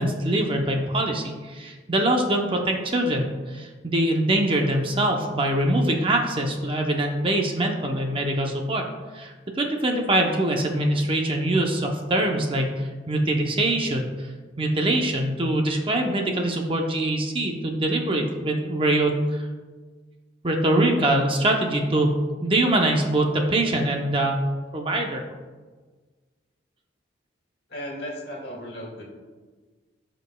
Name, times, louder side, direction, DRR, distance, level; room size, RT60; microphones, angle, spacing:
voice 1, 0.0-8.8 9.1-14.1 14.6-19.2 20.4-22.1 22.4-24.4 24.7-25.2, right 1 dB, 30° right, 2 dB, 0.7 m, -23 dB
voice 2, 27.7-29.0, equal, 60° left, -1 dB, 1.8 m, -35 dB
14.0 x 5.2 x 2.2 m, 1.4 s
head